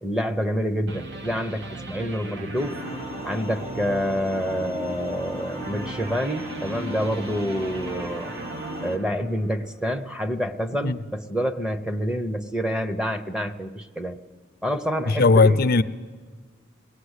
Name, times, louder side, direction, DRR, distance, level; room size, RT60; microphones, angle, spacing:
voice 1, 0.0-2.8 3.2-8.3 8.8-14.2 14.6-15.6, equal, 5° right, 8 dB, 0.8 m, -27 dB
sound 1, 0.9-9.9, right 2 dB, 60° right, 1.0 m, -38 dB
sound 2, 2.5-9.0, equal, 35° right, 1.8 m, -36 dB
voice 2, 15.1-15.8, left 3 dB, 50° left, 11 dB, 0.6 m, -17 dB
22.5 x 18.5 x 8.2 m, 1.5 s
head